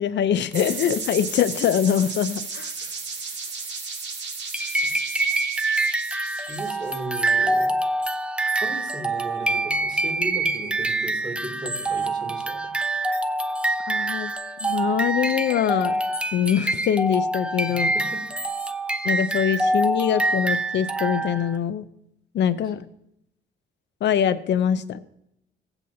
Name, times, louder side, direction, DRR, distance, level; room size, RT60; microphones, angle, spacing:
voice 1, 0.0-2.7 13.9-14.3 14.6-16.0 16.3-17.9 19.0-21.8 22.3-22.8 24.0-25.1, left 9 dB, 65° left, 13 dB, 0.7 m, -23 dB
sound 1, 0.5-7.2, right 4 dB, 65° right, 2.2 m, -34 dB
sound 2, 4.5-21.6, right 2 dB, 5° right, 0.6 m, -25 dB
voice 2, 6.5-7.8 8.6-12.7 17.7-18.2, right 1 dB, 20° right, 2 dB, 2.7 m, -36 dB
17.0 x 8.1 x 2.8 m, 0.78 s
cardioid pair, 90°, 20 cm